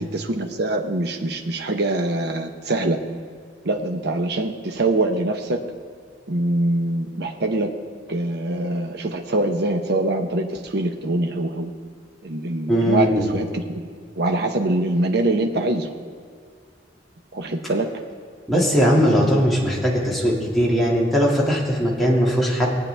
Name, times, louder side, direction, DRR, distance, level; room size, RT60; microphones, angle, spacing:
voice 1, 0.1-3.0 3.6-5.6 6.3-7.7 8.1-11.7 12.2-13.8 14.2-15.9 17.3-17.9, right 2 dB, 60° right, 4 dB, 0.8 m, -24 dB
voice 2, 12.7-13.3 18.5-22.8, equal, ahead, -5 dB, 2.1 m, -19 dB
19.0 x 8.8 x 3.4 m, 2.1 s
head